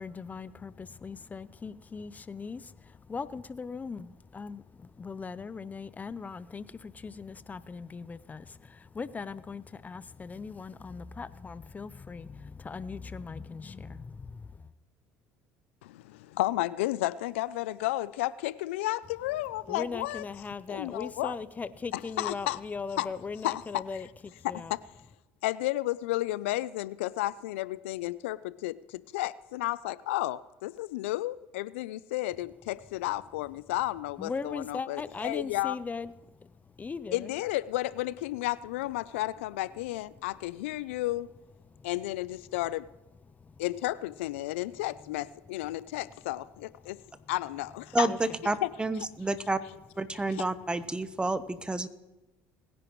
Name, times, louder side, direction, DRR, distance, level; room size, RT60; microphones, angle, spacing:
voice 1, 0.0-14.7 19.7-24.7 34.2-36.1 36.4-36.5 36.8-37.3 41.7-41.9 43.4-43.5 48.0-48.2, left 5 dB, 25° left, 16 dB, 0.5 m, -39 dB
voice 2, 15.8-20.2 20.7-21.4 21.9-22.6 23.0-23.1 23.4-23.8 24.4-24.8 25.4-35.8 37.1-41.3 41.8-42.9 43.6-47.0 47.3-48.1 48.6-48.7 50.4-50.5, left 17 dB, 85° left, 19 dB, 0.4 m, -32 dB
voice 3, 47.9-49.6 50.0-51.9, right 2 dB, 15° right, 13 dB, 1.0 m, -30 dB
20.5 x 10.5 x 3.1 m, 1.1 s
supercardioid pair, 80°, 6 cm